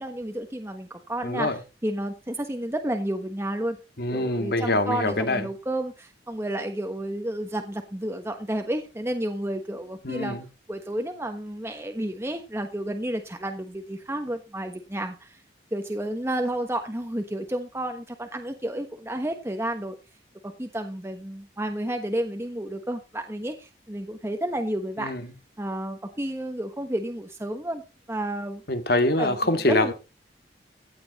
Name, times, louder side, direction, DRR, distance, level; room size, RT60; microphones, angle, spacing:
voice 1, 0.0-3.8 4.1-10.4 10.7-15.4 15.7-19.9 20.4-25.1 25.6-27.8 28.1-28.6 29.2-29.9, right 1 dB, 15° right, 1.2 m, -31 dB
voice 2, 1.2-1.6 4.0-5.5 10.0-10.4 25.0-25.2 28.7-29.9, left 1 dB, 60° left, 2.0 m, -24 dB
15.0 x 9.4 x 4.2 m
head